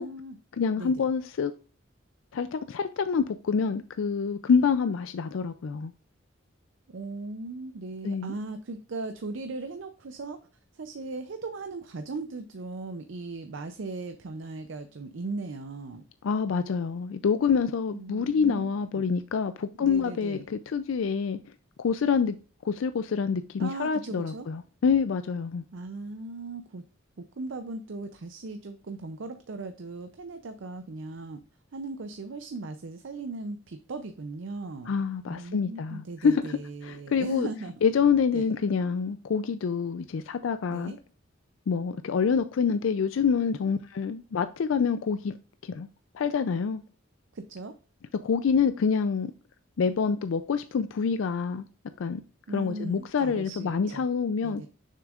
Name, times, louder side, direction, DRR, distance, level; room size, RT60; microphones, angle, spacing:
voice 1, 0.0-0.4 0.8-1.1 6.9-10.4 10.7-16.0 17.9-19.1 19.8-20.5 23.6-24.5 25.7-26.8 27.2-31.4 31.7-34.9 35.3-37.7 38.3-38.5 40.7-41.0 47.3-47.8 52.5-54.0 54.4-54.7, right 3 dB, 70° right, 0.5 m, -38 dB
voice 2, 0.6-1.5 2.3-5.9 8.0-8.3 16.2-21.4 21.8-22.4 22.6-25.6 34.9-37.5 37.8-40.9 41.7-45.4 45.6-45.9 46.1-46.8 48.2-49.3 49.8-51.7 52.0-52.2 52.5-54.6, left 6 dB, 75° left, 0.4 m, -26 dB
6.6 x 6.1 x 2.4 m
head